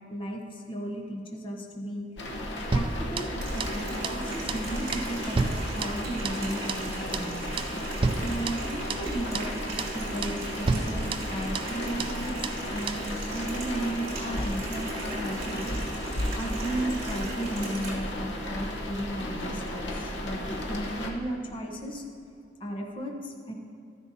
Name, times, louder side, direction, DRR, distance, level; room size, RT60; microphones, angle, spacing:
voice 1, 0.1-2.1 2.7-7.4 8.2-9.7 9.9-12.3 12.6-15.8 16.3-22.0 22.6-23.5, right 1 dB, 30° left, 1 dB, 0.9 m, -35 dB
sound 1, 2.2-21.1, left 1 dB, 75° left, 1.0 m, -34 dB
sound 2, 2.7-4.2 4.5-4.7 4.9-6.4 6.7-6.9 7.1-7.3 7.6-9.1 9.3-9.5 9.8-10.0 10.2-10.4 10.7-11.7 12.0-12.2 12.4-12.6 12.9-13.1, right 3 dB, 30° right, 0.3 m, -31 dB
Water tap faucet, 3.4-17.9, right 2 dB, 60° right, 2.4 m, -39 dB
12.5 x 9.9 x 2.7 m, 2.5 s
head